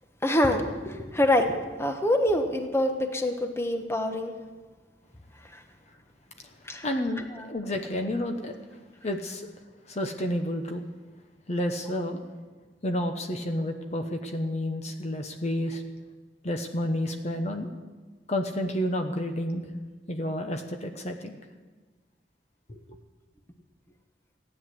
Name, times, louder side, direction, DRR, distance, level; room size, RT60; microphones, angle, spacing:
voice 1, 0.2-1.5 1.8-4.3 5.5-5.6 6.6-6.9, left 1 dB, 15° left, 5 dB, 1.1 m, -25 dB
voice 2, 6.8-8.5 9.0-9.5 9.9-10.9 11.5-12.2 12.8-15.8 16.4-17.7 18.3-19.7 20.1-21.4 22.7-22.8, left 1 dB, 40° left, 5 dB, 1.0 m, -30 dB
16.0 x 9.9 x 7.7 m, 1.4 s
head